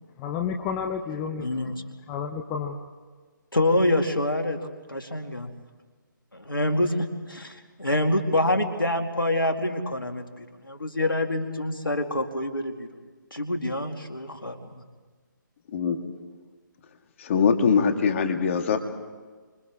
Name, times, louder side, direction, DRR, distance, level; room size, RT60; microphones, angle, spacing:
voice 1, 0.2-1.7 2.1-2.8, left 6 dB, 20° left, 3 dB, 0.9 m, -31 dB
voice 2, 1.4-1.7 3.5-4.6 4.9-5.5 6.3-12.9 13.3-14.8, left 1 dB, 85° left, 5 dB, 2.4 m, -26 dB
voice 3, 17.2-18.8, left 6 dB, 40° left, 7 dB, 1.8 m, -22 dB
29.5 x 25.5 x 3.6 m, 1.4 s
figure-of-eight pair, 145°, 11 cm